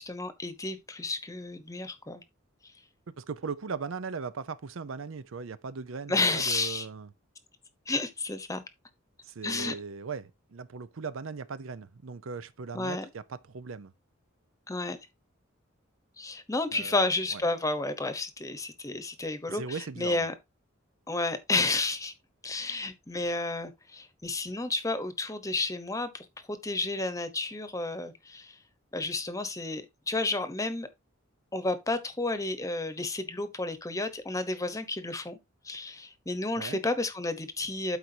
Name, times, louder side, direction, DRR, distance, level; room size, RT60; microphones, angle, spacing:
voice 1, 0.0-2.2 6.1-6.9 7.9-8.6 9.4-9.8 12.7-13.1 14.7-15.0 16.2-20.3 21.1-22.1 22.4-28.6 28.9-30.9 31.5-35.4 35.6-38.0, left 2 dB, 15° left, 1.0 m, -31 dB
voice 2, 3.1-7.1 9.2-13.9 16.7-17.4 19.5-20.3 36.6-36.8, right 5 dB, 75° right, 0.6 m, -38 dB
12.0 x 4.7 x 2.8 m
head